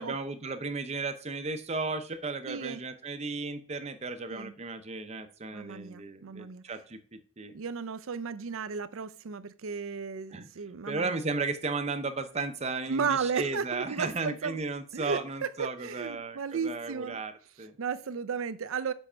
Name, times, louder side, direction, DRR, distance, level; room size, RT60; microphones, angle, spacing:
voice 1, 0.0-7.5 10.3-10.5 10.9-17.3 17.6-17.8, right 3 dB, 30° right, 0.6 m, -35 dB
voice 2, 2.5-2.8 4.3-4.5 5.5-6.6 7.5-11.2 12.9-14.6 14.9-17.2 17.8-18.9, right 6 dB, 80° right, 0.5 m, -34 dB
7.2 x 5.4 x 4.4 m
head